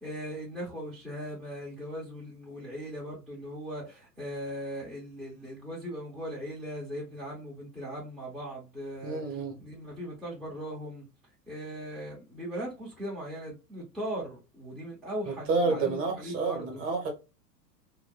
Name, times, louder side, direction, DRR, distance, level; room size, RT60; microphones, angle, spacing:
voice 1, 0.0-11.1 11.5-16.9, equal, ahead, 0.7 m, -39 dB
voice 2, 9.0-9.5 15.5-17.1, right 3 dB, 25° right, 0.9 m, -29 dB
2.7 x 2.1 x 2.2 m
figure-of-eight pair, 95°, 49 cm